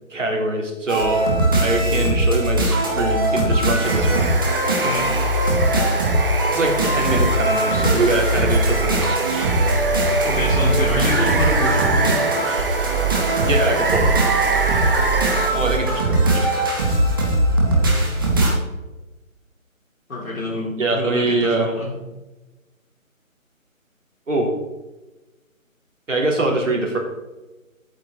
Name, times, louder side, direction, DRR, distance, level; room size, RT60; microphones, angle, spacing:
voice 1, 0.1-1.2 1.6-4.3 6.5-9.2 13.5-14.2 15.5-16.5 20.8-21.7 24.3-24.5 26.1-27.0, right 2 dB, 60° right, 0 dB, 3.4 m, -23 dB
sound 1, 0.9-18.5, right 1 dB, 15° right, 1.3 m, -20 dB
Water, 3.8-15.5, right 3 dB, 40° right, 1.1 m, -26 dB
voice 2, 4.8-5.1 10.2-12.2 20.1-21.9, left 2 dB, 80° left, -2 dB, 3.7 m, -26 dB
14.5 x 9.0 x 3.9 m, 1.1 s
figure-of-eight pair, 165°, 41 cm